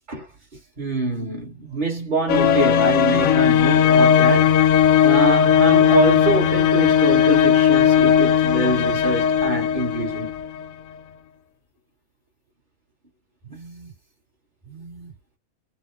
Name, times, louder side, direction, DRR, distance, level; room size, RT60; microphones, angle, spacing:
voice 1, 0.8-10.3 13.4-13.9 14.6-15.1, right 3 dB, 35° right, 1.7 m, -25 dB
sound 1, 2.3-10.6, left 9 dB, 75° left, 1.0 m, -17 dB
4.0 x 2.3 x 4.6 m
omnidirectional pair, 1.5 m